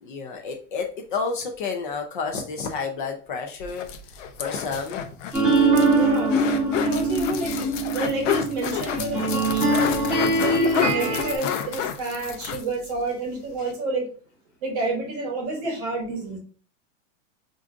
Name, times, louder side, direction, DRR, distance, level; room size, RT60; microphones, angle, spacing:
voice 1, 0.0-3.9 4.4-5.0, left 5 dB, 45° left, 3 dB, 0.4 m, -30 dB
sound 1, 3.6-13.0 13.3-13.4 13.6-13.7, left 8 dB, 85° left, 0.7 m, -30 dB
sound 2, 5.3-11.3, right 2 dB, ahead, 0.9 m, -22 dB
Piano, 5.7-7.7, right 8 dB, 55° right, 0.6 m, -34 dB
voice 2, 5.9-6.4 6.8-9.7 10.2-14.1 14.6-16.4, right 2 dB, 30° right, 0 dB, 0.9 m, -29 dB
4.5 x 2.5 x 2.4 m, 0.41 s
supercardioid pair, 180°, 37 cm